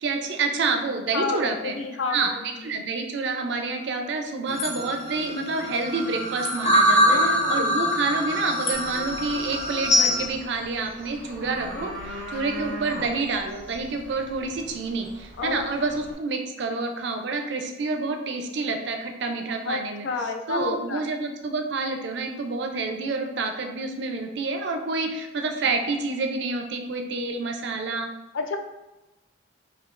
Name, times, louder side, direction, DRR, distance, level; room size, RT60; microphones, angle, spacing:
voice 1, 0.0-1.8 2.1-2.3 2.6-20.1 20.5-28.1, right 3 dB, 65° right, 4 dB, 0.4 m, -28 dB
voice 2, 1.1-2.6 7.1-7.8 11.4-11.9 15.4-15.7 19.7-21.0 22.7-22.8 28.3-28.6, left 4 dB, 90° left, 5 dB, 0.4 m, -30 dB
sound 1, 4.5-10.2, equal, 35° left, 0.7 m, -23 dB
sound 2, 8.7-16.1, right 1 dB, 10° left, 0.9 m, -40 dB
5.1 x 2.3 x 2.4 m, 1.0 s
head